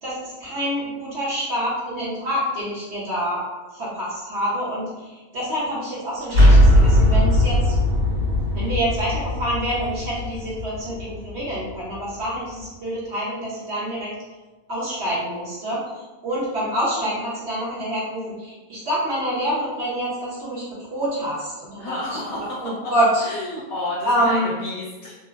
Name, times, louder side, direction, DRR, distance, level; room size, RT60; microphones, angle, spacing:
voice 1, 0.0-3.4 3.7-7.7 8.5-14.1 14.7-20.6 20.9-23.2 24.0-24.5, equal, 60° right, -7 dB, 0.9 m, -26 dB
sound 1, 6.3-12.0, equal, 85° right, 1.4 m, -18 dB
voice 2, 21.8-22.6 23.2-25.2, left 2 dB, 60° left, -7 dB, 0.9 m, -31 dB
3.0 x 2.0 x 2.3 m, 1.2 s
omnidirectional pair, 1.4 m